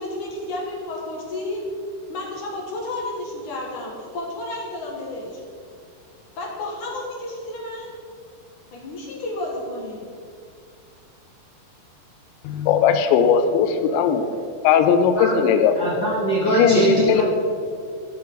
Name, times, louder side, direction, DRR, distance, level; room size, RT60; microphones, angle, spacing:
voice 1, 0.0-1.7 2.1-5.4 6.4-7.9 8.7-10.1, left 2 dB, 60° left, -2 dB, 2.2 m, -31 dB
voice 2, 12.4-14.2 14.6-15.8 16.5-17.2, left 7 dB, 80° left, 8 dB, 2.8 m, -18 dB
voice 3, 15.7-17.2, right 2 dB, 40° left, -8 dB, 1.6 m, -21 dB
17.0 x 6.0 x 4.6 m, 2.3 s
omnidirectional pair, 5.4 m